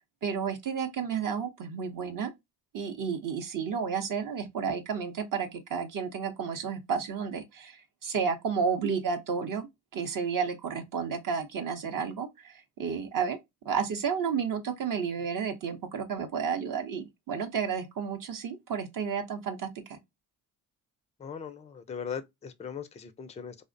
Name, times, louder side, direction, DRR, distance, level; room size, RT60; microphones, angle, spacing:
voice 1, 0.0-2.3 2.7-13.4 13.6-20.0, right 6 dB, 50° right, 0.6 m, -32 dB
voice 2, 21.2-23.6, left 7 dB, 15° left, 0.3 m, -39 dB
2.4 x 2.0 x 2.5 m
supercardioid pair, 55°, 43 cm